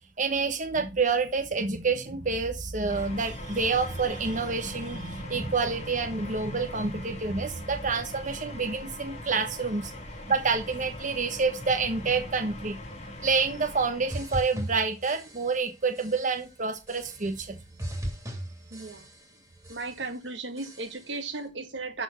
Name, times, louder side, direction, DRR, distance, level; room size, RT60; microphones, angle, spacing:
voice 1, 0.2-9.9 10.3-12.8 13.2-17.6, right 4 dB, 45° right, 5 dB, 1.1 m, -28 dB
sound 1, 2.9-14.5, left 1 dB, 40° left, 2.5 m, -41 dB
sound 2, 14.1-15.7 15.9-16.5 16.9-17.5 17.8-19.4 19.6-20.2 20.6-21.2, equal, 15° right, 3.0 m, -39 dB
voice 2, 18.7-19.0 19.7-22.0, right 3 dB, 80° right, 7 dB, 1.7 m, -35 dB
12.0 x 4.4 x 5.6 m, 0.27 s
head